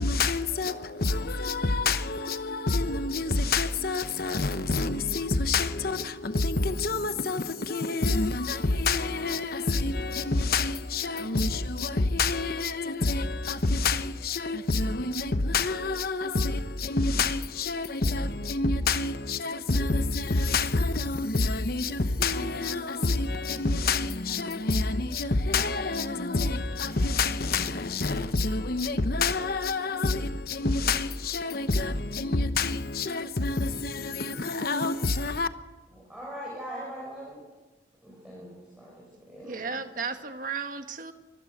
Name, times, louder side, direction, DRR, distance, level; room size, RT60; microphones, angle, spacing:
voice 1, 0.0-35.5, left 3 dB, 55° left, 0.9 m, -27 dB
voice 2, 36.1-37.4 38.0-38.9 39.3-39.8, equal, 5° right, 6.0 m, -41 dB
voice 3, 39.4-41.1, right 5 dB, 45° right, 1.6 m, -34 dB
25.0 x 15.5 x 8.0 m
head